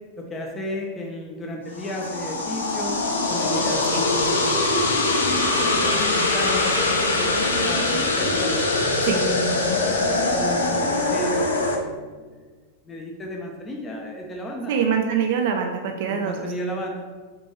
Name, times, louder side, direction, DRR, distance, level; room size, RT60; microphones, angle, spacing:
voice 1, 0.2-2.9 3.3-8.5 9.1-12.5 12.8-14.7 15.9-17.1, equal, 20° left, 1 dB, 0.6 m, -33 dB
sound 1, 1.7-11.8, left 2 dB, 70° left, 0.6 m, -22 dB
voice 2, 14.7-16.5, right 7 dB, 50° right, 3 dB, 0.4 m, -24 dB
6.1 x 2.6 x 3.0 m, 1.4 s
figure-of-eight pair, 90°, 0 cm